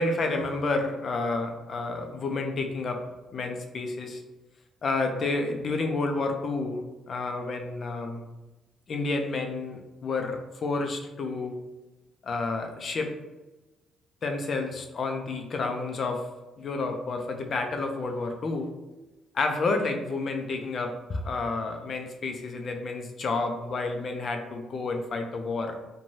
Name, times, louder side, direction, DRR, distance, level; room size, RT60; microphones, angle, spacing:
voice 1, 0.0-3.0 3.3-4.2 4.8-8.2 8.9-11.6 12.2-13.1 14.2-16.2 16.6-18.7 19.3-25.8, left 3 dB, 50° left, 4 dB, 0.4 m, -30 dB
3.1 x 2.2 x 2.6 m, 1.1 s
cardioid pair, 90°, 0 cm